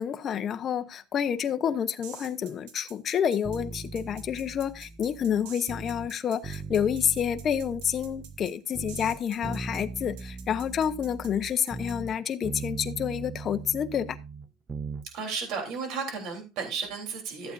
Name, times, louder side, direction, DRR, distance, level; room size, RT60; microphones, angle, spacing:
voice 1, 0.0-14.2, left 8 dB, 30° left, 0.8 m, -29 dB
sound 1, 2.0-12.0, right 8 dB, 85° right, 2.0 m, -48 dB
sound 2, 3.4-6.1 6.4-8.5 8.7-12.2 12.4-15.1 15.3-15.4, right 4 dB, 15° right, 0.4 m, -39 dB
voice 2, 15.1-17.5, right 5 dB, 55° right, 3.5 m, -33 dB
14.5 x 8.2 x 2.6 m
cardioid pair, 170°, 0 cm